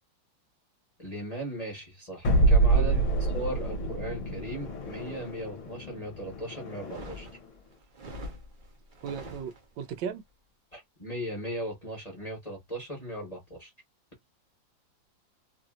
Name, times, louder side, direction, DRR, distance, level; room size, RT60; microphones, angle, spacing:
voice 1, 1.0-7.3 10.7-13.7, right 1 dB, 25° left, 1.2 m, -38 dB
sound 1, 2.2-7.3, right 2 dB, 50° left, 1.1 m, -27 dB
voice 2, 2.7-3.1 9.0-10.2, right 7 dB, 85° right, 1.4 m, -37 dB
sound 2, 6.7-10.0, equal, 40° right, 0.7 m, -44 dB
3.2 x 2.6 x 2.4 m
omnidirectional pair, 2.0 m